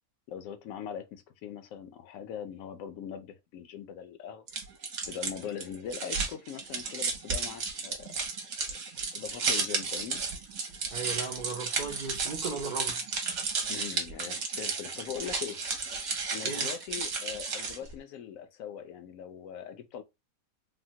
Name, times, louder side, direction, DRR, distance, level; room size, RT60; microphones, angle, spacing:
voice 1, 0.3-4.4 5.1-8.2 9.1-10.2 13.7-15.6 16.3-20.0, left 8 dB, 70° left, 0.9 m, -41 dB
sound 1, 4.5-17.9, right 4 dB, 60° right, 1.0 m, -33 dB
voice 2, 10.9-13.0 16.4-16.7, right 4 dB, 80° right, 0.4 m, -36 dB
3.5 x 2.0 x 2.7 m
omnidirectional pair, 1.5 m